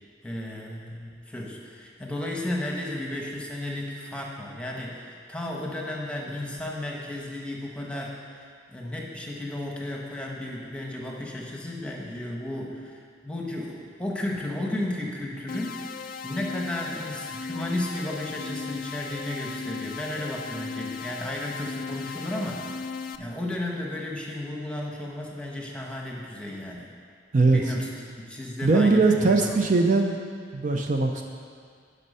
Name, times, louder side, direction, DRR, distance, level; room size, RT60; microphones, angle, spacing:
voice 1, 0.2-15.9 16.2-26.9 27.5-29.6, left 1 dB, 5° left, -1 dB, 1.1 m, -34 dB
sound 1, 15.5-23.2, left 5 dB, 50° left, 0.4 m, -36 dB
voice 2, 28.6-30.2 30.5-31.2, right 3 dB, 45° right, 3 dB, 0.5 m, -20 dB
11.5 x 5.4 x 5.5 m, 2.1 s
head